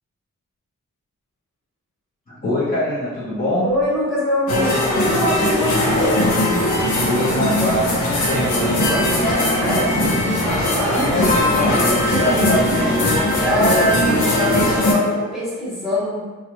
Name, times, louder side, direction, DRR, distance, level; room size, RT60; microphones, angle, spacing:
voice 1, 2.3-3.7 7.1-8.8 10.9-11.6 11.9-13.1, left 1 dB, 30° left, -11 dB, 0.8 m, -23 dB
voice 2, 3.6-6.3 8.9-10.0 10.4-11.0 11.4-12.2 13.4-16.2, equal, ahead, -10 dB, 1.1 m, -23 dB
sound 1, 4.5-14.9, left 1 dB, 70° left, 0.8 m, -19 dB
3.1 x 2.4 x 2.9 m, 1.3 s
wide cardioid pair, 135°, 31 cm